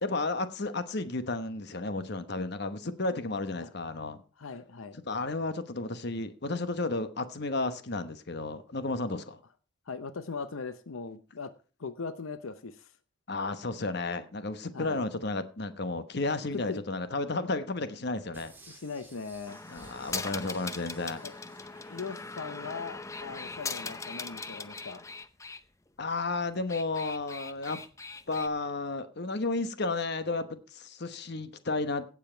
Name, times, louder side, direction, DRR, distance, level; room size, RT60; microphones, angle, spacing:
voice 1, 0.0-4.2 5.1-9.4 13.3-18.5 19.7-21.2 26.0-27.8 28.3-32.0, left 3 dB, 55° left, 1.1 m, -32 dB
voice 2, 4.4-5.0 9.9-11.5 11.8-12.9 14.7-15.0 16.5-16.8 18.7-19.6 21.2-21.3 21.9-25.0, left 4 dB, 90° left, 0.8 m, -39 dB
sound 1, 18.3-22.8 23.2-23.3, right 2 dB, 10° right, 3.2 m, -55 dB
sound 2, 19.5-25.6 26.5-28.5, left 4 dB, 15° left, 0.6 m, -40 dB
16.5 x 7.5 x 4.5 m
head